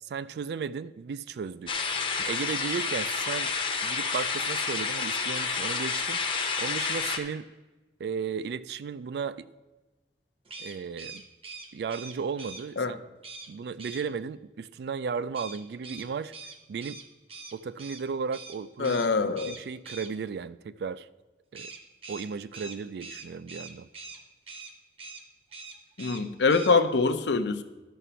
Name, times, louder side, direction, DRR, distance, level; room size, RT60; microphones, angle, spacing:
voice 1, 0.0-1.7 2.1-3.5 3.8-6.2 6.6-7.5 8.0-9.5 10.6-11.2 11.7-13.0 13.5-16.3 16.7-17.0 17.5-21.1 21.5-21.7 22.1-23.9, right 6 dB, 70° right, 16 dB, 0.3 m, -35 dB
sound 1, 1.7-7.2, left 5 dB, 30° left, 0.6 m, -29 dB
sound 2, 10.4-12.6 13.2-13.5 13.8-14.0 15.3-18.0 18.3-18.6 18.8-19.1 19.4-20.1 21.5-24.2 24.5-24.7 25.0-25.2 25.5-26.2 26.5-26.7, right 4 dB, 30° right, 0.7 m, -43 dB
voice 2, 18.8-19.6 26.0-27.6, left 4 dB, 80° left, 11 dB, 0.6 m, -24 dB
11.0 x 5.0 x 5.6 m, 1.1 s
head